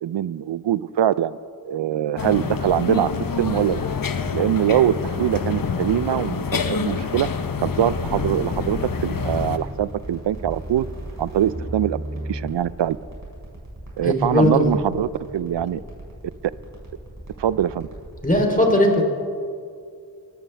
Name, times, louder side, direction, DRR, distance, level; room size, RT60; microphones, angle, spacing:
voice 1, 0.0-3.1 3.4-3.8 4.3-7.3 7.6-10.9 11.2-12.0 12.3-13.0 14.0-15.8 17.4-17.9, right 11 dB, 75° right, 18 dB, 0.5 m, -23 dB
sound 1, 2.2-9.6, left 5 dB, 50° left, 0.9 m, -27 dB
sound 2, 7.8-18.5, right 1 dB, 40° right, 5.0 m, -35 dB
voice 2, 14.0-14.7 18.2-19.0, left 1 dB, 20° left, 1 dB, 3.4 m, -18 dB
23.0 x 14.5 x 3.4 m, 2.3 s
cardioid pair, 50°, 43 cm